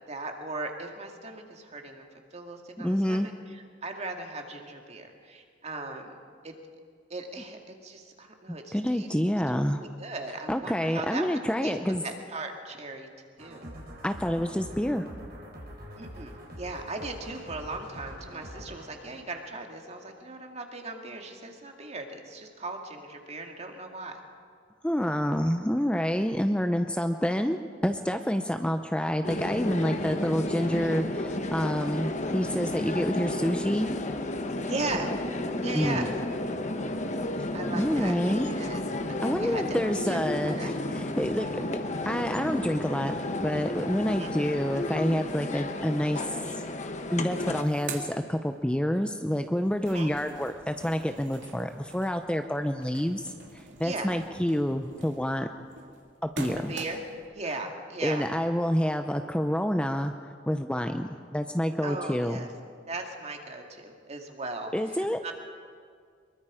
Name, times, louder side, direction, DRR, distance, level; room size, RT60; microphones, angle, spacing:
voice 1, 0.0-2.0 2.3-6.2 6.4-6.5 7.1-9.1 9.8-11.8 12.0-13.1 13.4-13.6 16.0-24.2 34.7-35.1 35.6-36.1 37.5-38.8 39.1-40.2 40.4-40.7 44.1-44.3 49.8-50.1 53.8-54.1 56.7-57.0 57.3-58.3 61.8-62.5 62.9-65.3, right 3 dB, 35° right, 3 dB, 2.2 m, -38 dB
voice 2, 2.8-3.3 8.5-9.8 10.5-12.0 14.0-15.1 24.8-33.9 35.7-36.1 37.7-38.6 39.2-41.7 42.1-46.2 46.5-46.6 47.1-55.5 56.2-56.7 58.0-60.1 60.5-62.4 64.7-65.2, equal, 5° left, 6 dB, 0.6 m, -28 dB
sound 1, 13.4-20.1, equal, 60° right, 4.2 m, -45 dB
sound 2, 29.2-47.6, left 1 dB, 40° left, 1.3 m, -32 dB
sound 3, 46.9-47.0 47.2-49.0 49.4-57.3, right 3 dB, 85° right, 2.6 m, -44 dB
24.0 x 22.5 x 5.0 m, 2.1 s
head